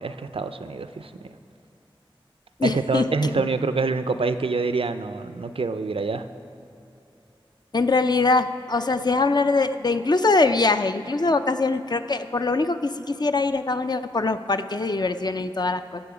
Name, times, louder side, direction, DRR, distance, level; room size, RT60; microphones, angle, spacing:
voice 1, 0.0-1.3 2.6-6.3, right 4 dB, 85° right, 10 dB, 0.5 m, -26 dB
voice 2, 2.6-3.1 3.3-3.5 7.7-16.0, left 3 dB, 50° left, 9 dB, 0.5 m, -23 dB
17.0 x 6.9 x 5.0 m, 2.8 s
wide cardioid pair, 45°, 9 cm